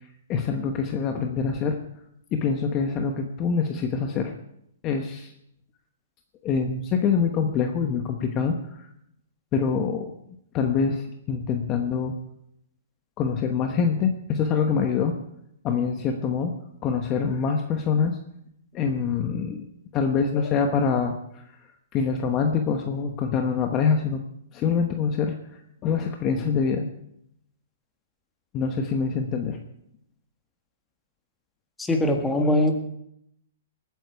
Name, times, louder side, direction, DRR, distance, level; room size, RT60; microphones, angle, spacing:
voice 1, 0.3-1.8 2.3-4.3 4.8-5.3 6.4-8.8 9.5-10.1 10.5-12.1 13.2-15.1 15.6-16.5 16.8-18.2 18.7-19.6 19.9-21.4 21.9-24.2 24.5-25.3 25.8-26.9 28.5-29.6, left 6 dB, 25° left, 5 dB, 1.0 m, -25 dB
voice 2, 31.8-32.7, left 1 dB, 5° left, 4 dB, 1.5 m, -21 dB
20.5 x 9.3 x 4.6 m, 0.75 s
hypercardioid pair, 150°, 0 cm